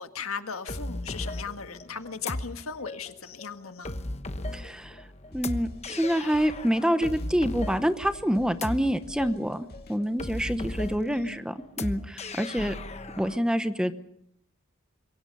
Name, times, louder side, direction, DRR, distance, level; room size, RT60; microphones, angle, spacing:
voice 1, 0.0-4.0 11.2-11.4, left 6 dB, 80° left, 7 dB, 1.7 m, -37 dB
sound 1, 0.7-13.4, left 2 dB, 30° left, 1.1 m, -36 dB
voice 2, 4.5-5.0 5.3-12.7 13.2-13.9, equal, 5° right, 10 dB, 0.9 m, -27 dB
sound 2, 5.3-10.6, left 1 dB, 45° left, 2.2 m, -48 dB
26.0 x 23.0 x 5.5 m, 0.70 s
head